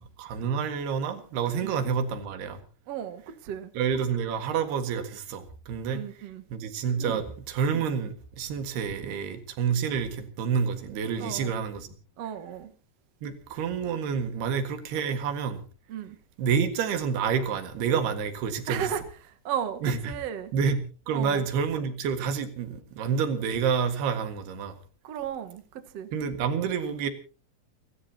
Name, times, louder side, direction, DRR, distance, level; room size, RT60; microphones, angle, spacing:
voice 1, 0.0-2.6 3.8-6.0 6.5-12.0 13.2-15.6 16.4-18.9 19.8-20.2 20.5-20.8 21.1-24.8 26.1-27.1, right 6 dB, 75° right, 3.7 m, -28 dB
voice 2, 2.9-3.7 5.9-6.4 7.0-7.2 9.0-9.1 11.2-11.6 12.2-12.7 15.9-16.2 18.7-20.5 21.1-21.4 25.0-26.1, right 9 dB, 60° right, 1.8 m, -35 dB
30.0 x 13.5 x 2.8 m
omnidirectional pair, 4.7 m